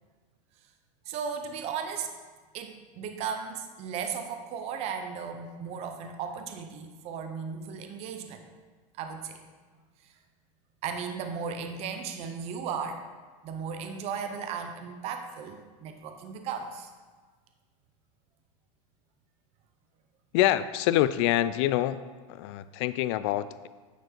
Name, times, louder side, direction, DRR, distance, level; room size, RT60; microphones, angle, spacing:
voice 1, 1.1-2.1 2.5-8.4 9.0-9.4 10.8-13.0 13.4-16.9, right 6 dB, 35° right, 6 dB, 0.7 m, -36 dB
voice 2, 20.3-22.0 22.3-23.7, left 13 dB, 55° left, 15 dB, 0.4 m, -26 dB
9.1 x 4.4 x 4.5 m, 1.4 s
supercardioid pair, 145°, 18 cm